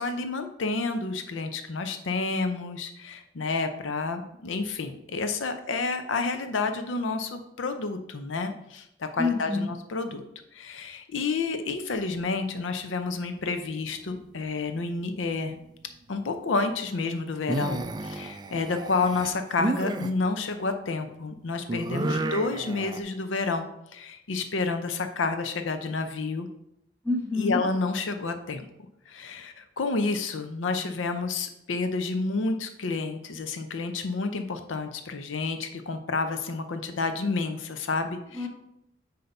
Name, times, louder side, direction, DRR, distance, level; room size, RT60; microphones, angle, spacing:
voice 1, 0.0-10.2 10.5-15.6 16.1-26.5 27.4-28.7 29.1-38.5, left 3 dB, 85° left, 7 dB, 0.6 m, -30 dB
voice 2, 9.2-9.7 21.9-22.4 27.0-27.6 38.3-38.5, left 3 dB, 15° left, -1 dB, 1.2 m, -28 dB
sound 1, 13.6-14.4 14.7-15.2 17.4-20.1 21.7-23.0, right 2 dB, 20° right, 0.3 m, -32 dB
7.7 x 2.8 x 5.3 m, 0.80 s
head